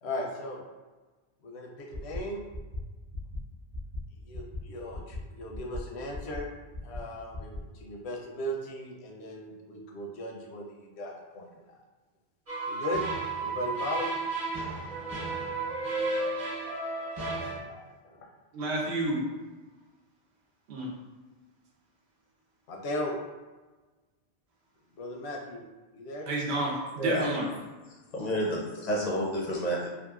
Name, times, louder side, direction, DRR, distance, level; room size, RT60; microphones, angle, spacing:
voice 1, 0.0-0.6 1.4-2.5 4.2-6.5 6.8-11.8 12.7-13.0 13.4-14.1 17.3-18.3 22.7-23.2 25.0-25.6 25.9-26.3, left 1 dB, 85° left, 0 dB, 0.9 m, -37 dB
sound 1, 1.9-2.2 2.5-2.8 3.1-3.4 3.7-4.0 4.3-4.6 4.9-5.2 5.5-5.8 6.1-6.4 6.7-7.0 7.3-7.6, left 2 dB, 55° right, 0.3 m, -37 dB
sound 2, 12.5-17.6, right 3 dB, 40° right, 0.8 m, -33 dB
voice 2, 18.5-19.2 20.7-20.9 26.3-27.5, right 2 dB, 90° right, -2 dB, 0.9 m, -30 dB
voice 3, 27.0-27.3 28.1-29.9, equal, 55° left, -3 dB, 0.5 m, -29 dB
2.8 x 2.4 x 2.3 m, 1.2 s
omnidirectional pair, 1.1 m